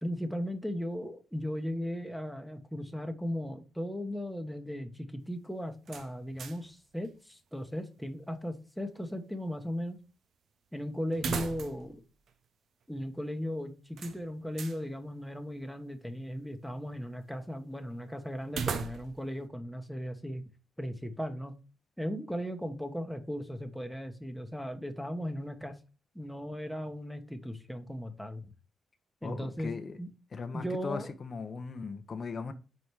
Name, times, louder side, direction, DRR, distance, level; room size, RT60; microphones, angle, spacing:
voice 1, 0.0-10.0 10.7-12.0 12.9-20.4 20.8-21.5 22.0-25.7 26.1-28.5 29.2-29.7 30.0-30.1 30.5-31.1, equal, ahead, 1.1 m, -37 dB
sound 1, 5.9-6.8 7.1-7.2 11.1-12.0 12.3-12.4 14.0-14.8 18.5-19.3, right 6 dB, 70° right, 0.7 m, -37 dB
voice 2, 29.2-30.0 30.3-32.5, left 4 dB, 45° left, 0.8 m, -38 dB
5.0 x 4.2 x 4.6 m
supercardioid pair, 65°, 0 cm